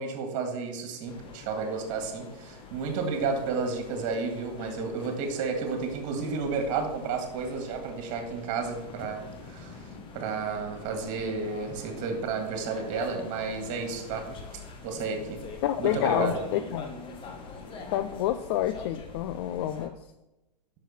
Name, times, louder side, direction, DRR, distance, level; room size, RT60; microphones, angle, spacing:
voice 1, 0.0-9.8 10.1-14.3 14.8-15.4 15.8-16.3, right 4 dB, 35° right, 5 dB, 2.1 m, -32 dB
sound 1, 1.1-19.9, left 4 dB, 25° left, 1.3 m, -44 dB
voice 2, 15.6-17.0 17.9-20.0, left 12 dB, 40° left, 11 dB, 0.4 m, -28 dB
10.0 x 6.4 x 4.4 m, 0.97 s
figure-of-eight pair, 110°, 21 cm